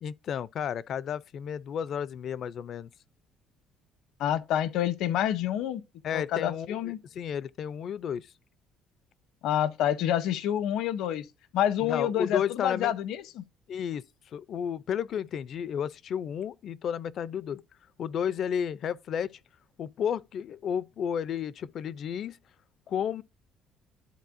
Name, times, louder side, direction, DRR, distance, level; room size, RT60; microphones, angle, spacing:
voice 1, 0.0-2.9 6.0-8.3 11.8-12.9 13.7-14.0 14.3-17.6 18.0-19.4 19.8-22.4 22.9-23.2, left 8 dB, 45° left, 0.4 m, -32 dB
voice 2, 4.2-5.8 6.1-7.0 9.4-11.2 11.5-13.5, left 11 dB, 70° left, 0.7 m, -28 dB
12.0 x 4.1 x 2.5 m
cardioid pair, 155°, 0 cm